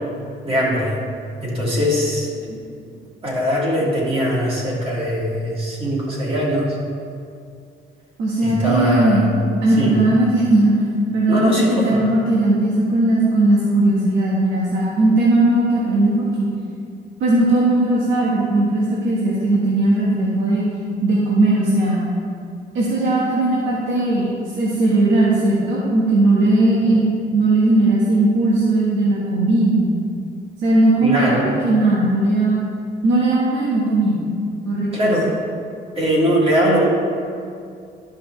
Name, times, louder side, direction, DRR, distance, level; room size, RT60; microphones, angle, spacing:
voice 1, 0.4-1.0 1.4-2.6 3.2-6.8 8.4-9.3 9.7-10.0 11.3-12.0 31.0-31.5 34.9-35.3 35.9-36.9, equal, 30° right, -4 dB, 1.9 m, -21 dB
voice 2, 8.2-9.2 9.6-10.9 11.1-16.5 17.2-20.6 21.0-22.0 22.7-24.3 24.5-29.9 30.6-32.6 33.0-34.2 34.6-35.2, right 2 dB, 75° right, -6 dB, 1.4 m, -18 dB
11.5 x 5.5 x 3.1 m, 2.4 s
cardioid pair, 135°, 20 cm